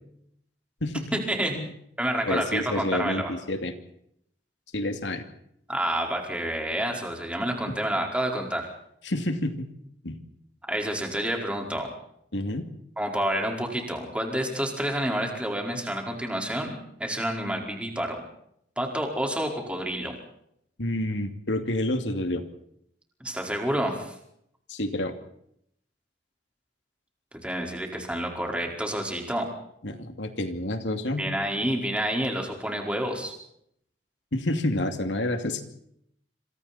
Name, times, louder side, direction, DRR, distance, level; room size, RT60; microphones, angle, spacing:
voice 1, 1.1-1.6 2.0-3.3 5.7-8.7 10.7-11.9 13.0-18.2 18.8-20.1 23.2-24.1 27.4-29.5 31.2-33.3, right 1 dB, 5° right, 1 dB, 4.8 m, -29 dB
voice 2, 2.3-3.7 4.7-5.2 7.7-7.8 9.0-9.7 10.0-10.2 12.3-12.7 20.8-22.4 24.7-25.1 29.8-31.3 34.3-35.6, left 1 dB, 85° left, 7 dB, 2.7 m, -29 dB
27.0 x 26.5 x 4.4 m, 0.72 s
head